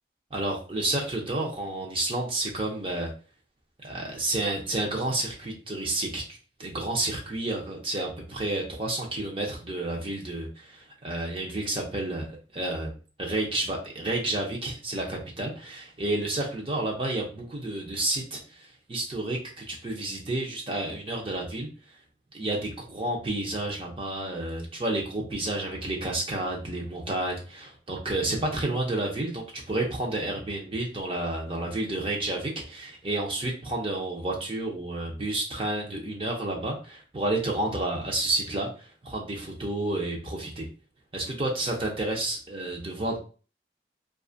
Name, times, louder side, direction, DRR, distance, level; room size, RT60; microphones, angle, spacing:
voice 1, 0.3-3.1 3.8-21.7 22.3-40.7 41.1-43.2, right 2 dB, 30° right, -1 dB, 0.5 m, -30 dB
2.5 x 2.4 x 2.4 m, 0.37 s
head